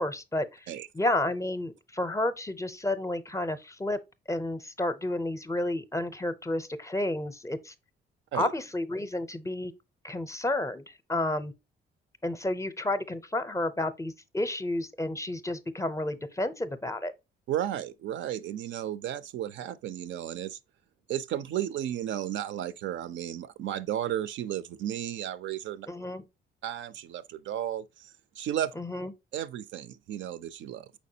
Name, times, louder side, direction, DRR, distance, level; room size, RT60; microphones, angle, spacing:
voice 1, 0.0-0.6 0.9-4.0 4.3-7.7 8.3-9.7 10.0-11.5 12.2-17.1 25.9-26.2 28.8-29.1, left 1 dB, 15° left, 0.5 m, -31 dB
voice 2, 17.5-20.6 21.1-25.9 26.6-28.7 29.3-30.9, right 11 dB, 70° right, 0.4 m, -34 dB
4.6 x 4.2 x 2.7 m
cardioid pair, 90°, 20 cm